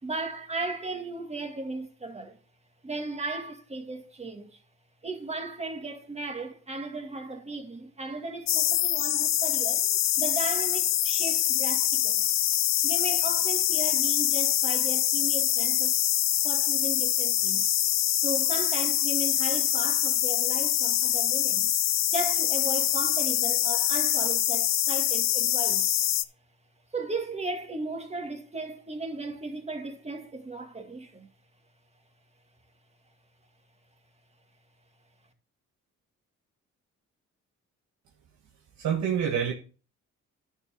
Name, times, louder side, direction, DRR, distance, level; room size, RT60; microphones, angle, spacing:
voice 1, 0.0-2.4 2.8-4.6 5.0-12.3 12.8-16.0 16.4-17.7 18.2-21.7 22.1-25.9 26.9-31.3, right 2 dB, 20° right, 2.0 m, -36 dB
sound 1, 8.5-26.2, left 12 dB, 60° left, 0.6 m, -25 dB
voice 2, 38.8-39.5, right 8 dB, 70° right, 1.3 m, -26 dB
10.5 x 6.5 x 3.6 m
cardioid pair, 90°, 30 cm